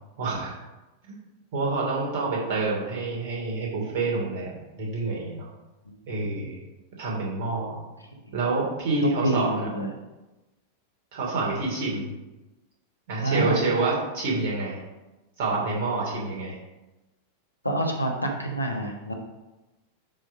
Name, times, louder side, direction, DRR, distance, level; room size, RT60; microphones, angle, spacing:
voice 1, 0.2-0.5 1.5-5.5 6.1-6.6 7.0-7.8 8.3-9.7 11.1-12.1 13.1-14.8 15.4-16.6, right 3 dB, 50° right, -3 dB, 2.8 m, -27 dB
voice 2, 9.0-9.9 13.2-13.7 17.6-19.1, right 1 dB, 85° left, 1 dB, 1.2 m, -27 dB
10.5 x 3.5 x 5.2 m, 1.1 s
figure-of-eight pair, 90°, 0 cm